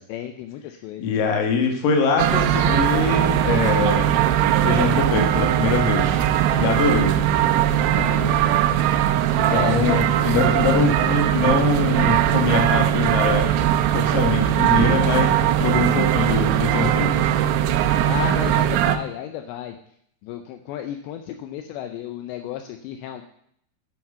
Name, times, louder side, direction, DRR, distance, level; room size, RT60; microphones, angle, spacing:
voice 1, 0.1-1.1 7.9-8.4 9.5-10.1 10.9-11.1 18.0-19.8 20.2-23.2, left 10 dB, 80° left, 7 dB, 2.6 m, -32 dB
voice 2, 1.0-4.2 4.6-6.2 6.6-7.2 9.3-13.5 13.9-17.2, left 4 dB, 55° left, 3 dB, 2.7 m, -23 dB
sound 1, 2.2-19.0, right 11 dB, 85° right, 3.4 m, -20 dB
9.4 x 9.4 x 5.5 m, 0.67 s
omnidirectional pair, 5.8 m